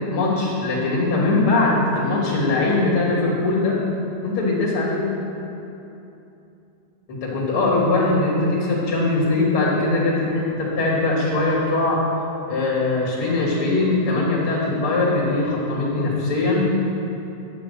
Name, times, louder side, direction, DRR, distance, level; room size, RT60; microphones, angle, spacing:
voice 1, 0.1-3.8 4.2-5.0 7.1-12.0 12.5-16.7, left 2 dB, 35° left, -4 dB, 2.9 m, -21 dB
12.0 x 9.1 x 6.8 m, 2.9 s
omnidirectional pair, 5.1 m